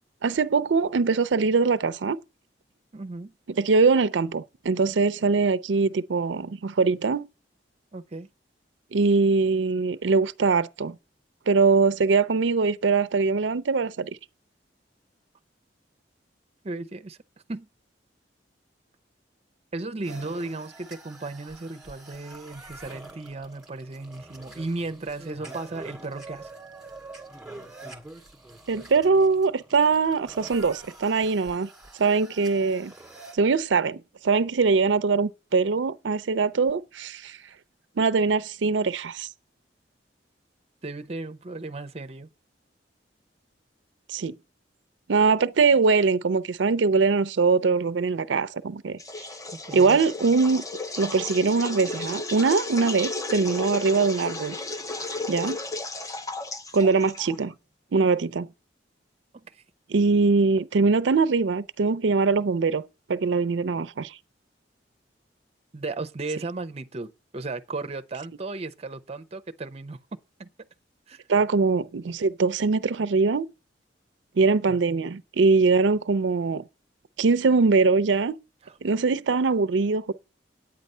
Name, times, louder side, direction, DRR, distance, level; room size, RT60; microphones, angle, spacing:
voice 1, 0.2-2.2 3.6-7.3 8.9-11.0 11.5-14.2 28.7-31.7 32.0-32.9 33.3-37.4 38.0-39.3 44.1-44.3 45.1-49.0 49.7-50.6 51.0-54.6 55.3-55.6 56.7-57.5 57.9-58.5 59.9-62.8 63.1-64.2 71.3-73.5 74.4-76.6 77.2-78.3 78.8-80.1, right 4 dB, 90° right, 0.5 m, -22 dB
voice 2, 2.9-3.3 7.9-8.3 16.6-17.2 17.5-17.7 19.7-26.5 40.8-42.3 49.5-50.0 55.0-55.2 59.3-59.6 65.7-70.0 70.4-70.5 71.1-71.2 74.7-75.2 78.6-78.7, right 3 dB, 35° right, 0.6 m, -35 dB
sound 1, 20.0-33.4, right 2 dB, 5° right, 2.0 m, -45 dB
sound 2, 49.0-57.5, left 2 dB, 20° left, 0.6 m, -34 dB
9.1 x 8.9 x 5.4 m
head